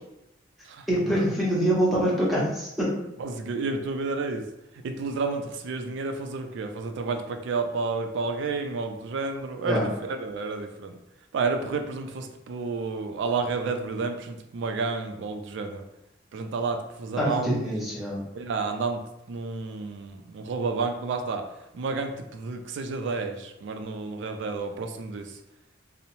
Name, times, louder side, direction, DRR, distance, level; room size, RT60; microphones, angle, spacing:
voice 1, 0.9-2.9 9.6-9.8 17.2-18.2, equal, ahead, -6 dB, 0.7 m, -25 dB
voice 2, 3.2-4.5 4.8-11.0 11.3-15.8 16.3-17.7 18.3-21.5 21.7-25.4, right 4 dB, 70° right, 6 dB, 0.3 m, -31 dB
2.9 x 2.0 x 2.6 m, 0.86 s
head